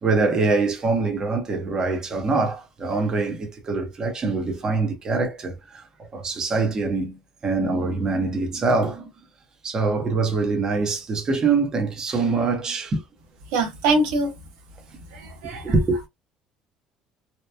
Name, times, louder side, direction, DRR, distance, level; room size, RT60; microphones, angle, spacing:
voice 1, 0.0-9.1 9.6-13.0 15.4-16.0, right 3 dB, 30° right, 0.9 m, -24 dB
voice 2, 13.5-14.3 15.1-15.7, right 2 dB, 90° right, 0.9 m, -23 dB
2.9 x 2.2 x 2.2 m
cardioid pair, 110°, 2 cm